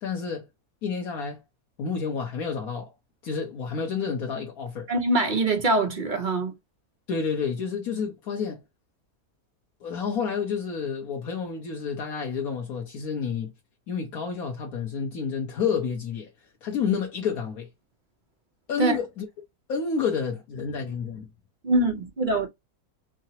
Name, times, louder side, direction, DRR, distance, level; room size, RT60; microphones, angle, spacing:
voice 1, 0.0-0.5 0.8-1.4 1.8-2.9 3.2-4.9 7.1-8.6 9.8-13.5 13.9-16.3 16.6-17.7 18.7-19.3 19.7-21.3, left 6 dB, 70° left, 1.4 m, -29 dB
voice 2, 4.9-6.5 18.8-19.0 21.6-22.5, right 2 dB, 40° right, 0.9 m, -23 dB
4.9 x 2.2 x 2.8 m
omnidirectional pair, 1.6 m